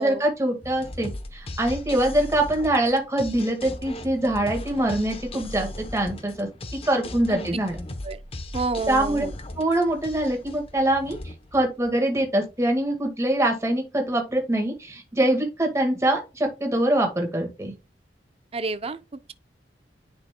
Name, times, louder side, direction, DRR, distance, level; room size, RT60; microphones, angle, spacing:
voice 1, 0.0-6.5 6.9-7.8 8.9-9.2 9.6-17.7, right 1 dB, 15° right, 1.7 m, -24 dB
sound 1, 0.6-12.3, left 1 dB, 35° left, 0.8 m, -38 dB
voice 2, 8.5-9.3 18.5-19.0, right 3 dB, 35° right, 0.5 m, -30 dB
9.9 x 5.3 x 2.2 m
head